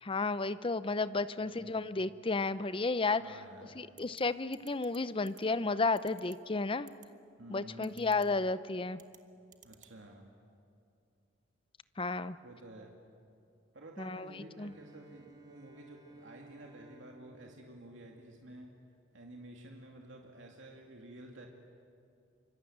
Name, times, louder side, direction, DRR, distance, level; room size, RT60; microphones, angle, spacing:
voice 1, 0.0-3.2 3.8-6.9 7.5-9.0 12.0-12.4 14.0-14.3 14.6-14.7, left 3 dB, 30° left, 14 dB, 0.7 m, -32 dB
voice 2, 1.4-1.9 3.2-3.8 7.4-8.0 9.6-10.3 12.4-12.9 13.7-18.7 19.1-21.5, right 1 dB, 75° right, 0 dB, 2.5 m, -51 dB
sound 1, 4.0-4.2 4.5-5.0 5.3-5.4 6.0-6.3 6.9-7.1 7.8-8.3 8.9-9.2 9.5-9.9, right 11 dB, 45° right, 1.5 m, -55 dB
Bowed string instrument, 14.5-18.6, right 2 dB, 20° right, 3.0 m, -58 dB
27.0 x 24.5 x 8.7 m, 2.5 s
head